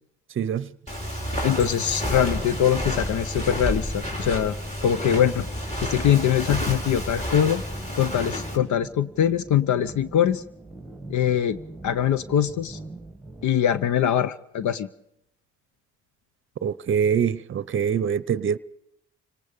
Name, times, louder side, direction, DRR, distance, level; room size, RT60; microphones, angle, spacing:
voice 1, 0.4-0.7 16.6-18.6, right 7 dB, 40° right, 0.7 m, -24 dB
Walk footsteps, 0.9-8.6, equal, 20° left, 4.0 m, -30 dB
voice 2, 1.4-4.6 4.8-5.5 5.8-7.6 8.0-10.4 11.1-11.6 11.8-12.8 13.4-14.9, left 10 dB, 70° left, 0.8 m, -22 dB
sound 1, 1.5-13.4, right 2 dB, ahead, 1.7 m, -43 dB
29.5 x 19.0 x 5.2 m
cardioid pair, 90°, 30 cm